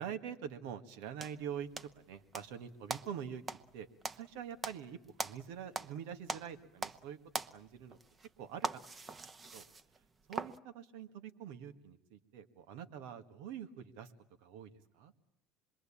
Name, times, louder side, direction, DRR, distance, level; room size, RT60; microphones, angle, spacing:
voice 1, 0.0-3.4 3.7-3.9 4.1-7.2 7.5-8.0 8.4-9.1 9.5-9.6 10.3-14.1 14.4-15.1, right 8 dB, 80° right, 9 dB, 1.8 m, -45 dB
sound 1, 1.2-2.5 2.9-6.0 6.2-7.1 7.3-10.6, right 4 dB, 30° right, 1.1 m, -42 dB
26.5 x 22.5 x 8.7 m, 0.73 s
supercardioid pair, 90°, 0 cm